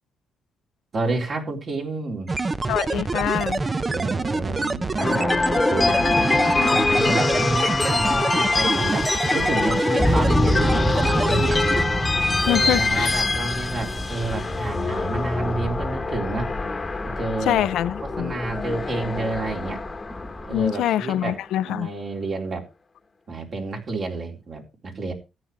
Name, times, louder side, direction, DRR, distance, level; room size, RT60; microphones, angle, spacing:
voice 1, 0.9-2.3 3.8-5.4 5.7-11.6 12.4-16.5 17.2-17.7 18.2-19.8 20.5-21.4 21.7-22.7 23.3-25.1, right 3 dB, 50° right, 3.9 m, -30 dB
sound 1, 2.3-11.8, right 3 dB, 25° right, 0.7 m, -26 dB
voice 2, 2.7-3.6 12.4-13.1 17.5-18.3 20.5-21.9, left 12 dB, 80° left, 0.5 m, -24 dB
sound 2, 5.0-21.2, left 3 dB, 25° left, 1.2 m, -25 dB
sound 3, 10.0-20.7, equal, ahead, 1.4 m, -28 dB
13.5 x 9.6 x 3.4 m
cardioid pair, 90°, 0 cm